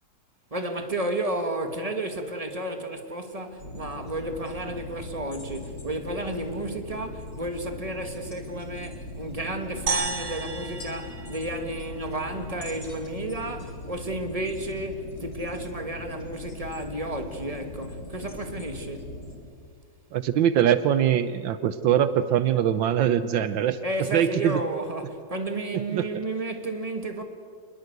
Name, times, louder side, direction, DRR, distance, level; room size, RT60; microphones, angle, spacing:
voice 1, 0.5-19.2 23.8-27.2, right 1 dB, 20° right, 1.9 m, -32 dB
sound 1, 3.6-19.4, left 2 dB, 55° left, 3.5 m, -40 dB
sound 2, 9.9-12.3, right 4 dB, 50° right, 2.1 m, -32 dB
voice 2, 20.1-23.8 24.1-24.6 25.9-26.1, right 10 dB, 80° right, 1.5 m, -22 dB
27.0 x 21.0 x 8.1 m
omnidirectional pair, 2.1 m